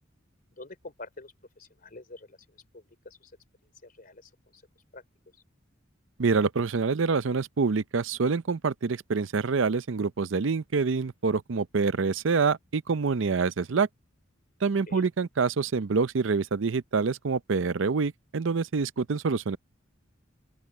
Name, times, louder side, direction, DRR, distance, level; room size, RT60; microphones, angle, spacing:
voice 1, 0.5-3.3 3.8-4.6 4.9-5.0 5.3-5.4 14.9-15.1, left 2 dB, 45° left, 3.4 m, -47 dB
voice 2, 6.2-13.9 14.6-19.6, right 4 dB, 65° right, 0.6 m, -26 dB
open air
head